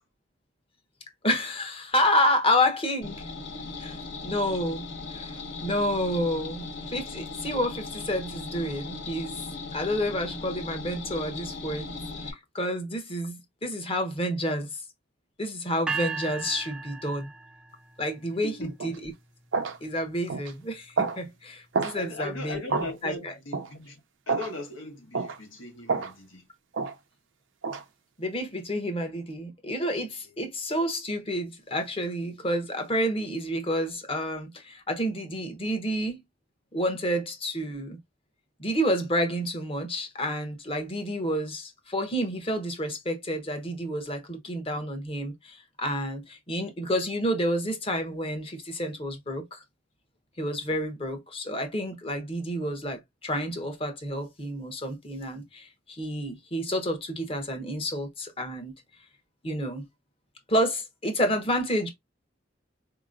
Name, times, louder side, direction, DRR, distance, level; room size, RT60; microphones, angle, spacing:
voice 1, 1.2-3.2 3.8-9.4 9.7-11.9 12.2-14.8 15.4-17.3 18.0-19.1 19.8-23.3 28.2-36.2 36.7-38.0 38.6-49.6 50.4-58.7 59.4-59.9 60.5-61.9, equal, 30° left, 0.9 m, -29 dB
sound 1, 3.0-12.3, left 3 dB, 65° left, 1.0 m, -38 dB
sound 2, 15.9-18.0, right 5 dB, 5° right, 0.3 m, -35 dB
voice 2, 18.3-18.9 21.9-24.0 24.3-26.5, left 2 dB, 85° left, 1.3 m, -38 dB
sound 3, 18.8-19.0 19.5-19.8 20.3-20.5 21.0-21.2 21.7-22.0 22.7-22.9 23.5-23.7 24.3-24.5 25.1-25.4 25.9-26.1 26.7-26.9 27.6-27.8, right 4 dB, 75° right, 0.6 m, -28 dB
4.4 x 2.9 x 2.5 m
head